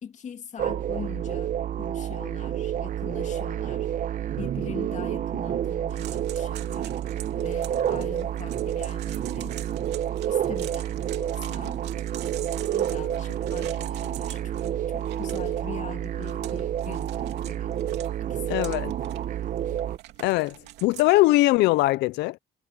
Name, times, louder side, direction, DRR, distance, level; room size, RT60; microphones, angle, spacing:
voice 1, 0.0-3.9 4.4-6.9 7.3-9.6 10.3-11.8 12.4-17.8 18.2-18.7, left 8 dB, 45° left, 2.3 m, -42 dB
sound 1, 0.6-20.0, right 10 dB, 50° right, 0.9 m, -29 dB
sound 2, 5.9-21.2, right 15 dB, 90° right, 2.8 m, -45 dB
voice 2, 18.5-18.9 20.2-20.5 20.8-22.4, left 19 dB, 85° left, 0.5 m, -21 dB
cardioid pair, 110°, 17 cm